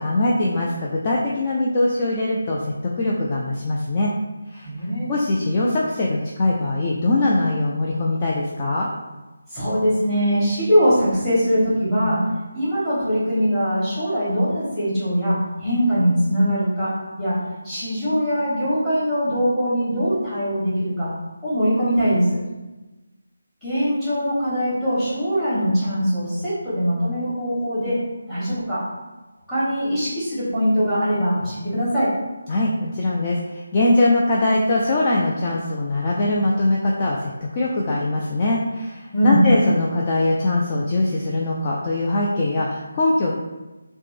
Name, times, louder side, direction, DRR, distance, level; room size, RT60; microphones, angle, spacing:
voice 1, 0.0-4.1 4.5-4.7 5.1-8.9 32.5-43.3, left 2 dB, 25° left, -4 dB, 0.3 m, -22 dB
voice 2, 4.6-5.1 9.5-12.2 12.5-16.9 17.2-17.3 17.6-21.1 21.4-22.4 23.6-28.0 28.3-28.8 29.5-32.1 39.1-39.4, equal, 5° left, -12 dB, 1.4 m, -21 dB
3.2 x 2.0 x 3.2 m, 1.1 s
figure-of-eight pair, 155°, 0 cm